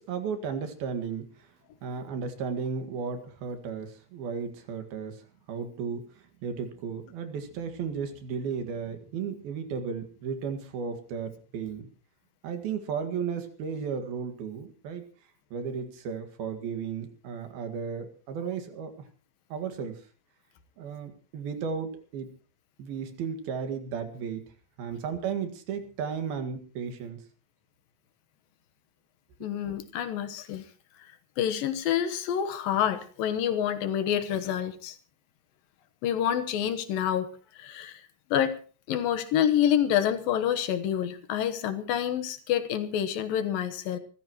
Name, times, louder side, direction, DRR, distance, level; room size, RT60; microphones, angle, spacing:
voice 1, 0.1-1.3 1.8-5.1 5.5-6.1 6.4-11.9 12.4-15.0 15.5-18.9 19.5-20.0 20.8-22.3 22.8-24.5 24.8-27.2, right 6 dB, 90° right, 7 dB, 3.8 m, -34 dB
voice 2, 29.4-30.6 31.4-35.0 36.0-37.3 37.6-38.0 38.3-38.6 38.9-44.0, left 10 dB, 75° left, 10 dB, 2.9 m, -27 dB
26.0 x 14.5 x 3.1 m, 0.37 s
omnidirectional pair, 4.2 m